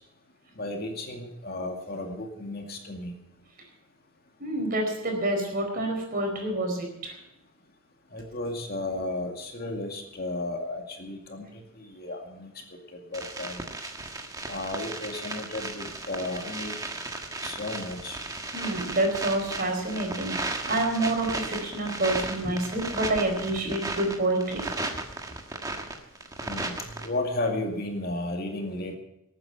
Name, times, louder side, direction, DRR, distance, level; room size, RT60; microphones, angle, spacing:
voice 1, 0.6-3.1 8.1-11.5 11.8-12.5 13.1-13.6 14.5-16.8 17.4-18.2 22.4-22.6 23.6-23.8 26.4-29.0, left 2 dB, 45° left, 2 dB, 2.3 m, -33 dB
voice 2, 4.4-7.2 18.5-24.7, right 1 dB, 40° right, 2 dB, 4.5 m, -28 dB
sound 1, 13.1-27.1, right 2 dB, 15° right, 1.5 m, -35 dB
19.5 x 9.3 x 5.8 m, 0.83 s
head